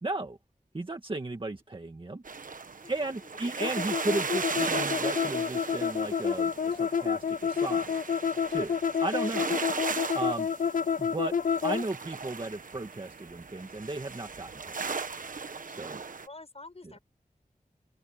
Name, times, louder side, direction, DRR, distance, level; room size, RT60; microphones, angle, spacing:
voice 1, 0.0-0.4 0.7-2.2 2.9-7.9 8.5-9.5 10.1-10.5 11.0-11.3 11.6-14.8 15.7-16.0, right 2 dB, 35° right, 1.9 m, -35 dB
sound 1, 2.3-16.3, right 4 dB, 65° right, 1.2 m, -37 dB
voice 2, 2.8-3.8 9.4-9.6 16.3-17.0, left 3 dB, 45° left, 6.0 m, -49 dB
sound 2, 3.6-11.8, left 6 dB, 65° left, 0.5 m, -29 dB
open air
wide cardioid pair, 85°, 15 cm